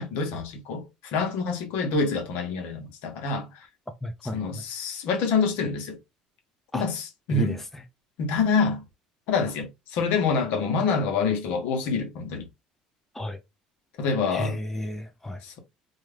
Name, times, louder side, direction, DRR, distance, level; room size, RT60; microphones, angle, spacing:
voice 1, 0.0-3.6 4.3-6.0 6.7-7.6 8.2-8.8 9.3-12.5 14.0-14.6 15.4-15.6, left 4 dB, 70° left, 0.9 m, -26 dB
voice 2, 4.0-4.6 6.7-6.8 7.3-7.8 13.1-13.4 14.3-15.4, left 1 dB, 10° left, 0.6 m, -32 dB
2.5 x 2.3 x 3.3 m
supercardioid pair, 85°, 3 cm